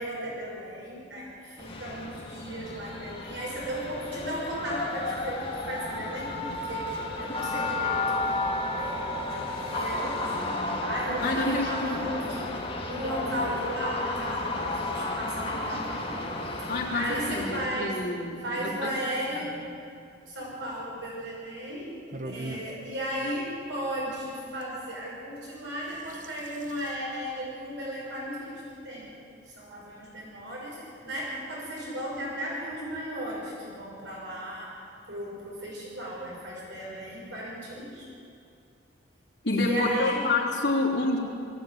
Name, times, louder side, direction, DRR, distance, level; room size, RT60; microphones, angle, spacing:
voice 1, 0.0-16.2 16.6-17.9 18.4-19.6 20.3-21.9 22.2-29.1 29.5-34.7 35.1-38.0 39.5-40.2, right 1 dB, 70° right, -4 dB, 6.1 m, -35 dB
sound 1, 1.6-17.7, left 2 dB, 30° left, 2.5 m, -32 dB
voice 2, 11.2-12.0 16.7-18.9 19.3-19.6 39.4-41.2, left 2 dB, 60° left, -5 dB, 3.5 m, -28 dB
sound 2, 22.1-22.7 24.6-24.7 25.7-26.9, right 2 dB, 40° right, 1.0 m, -40 dB
20.5 x 16.0 x 9.5 m, 2.4 s
head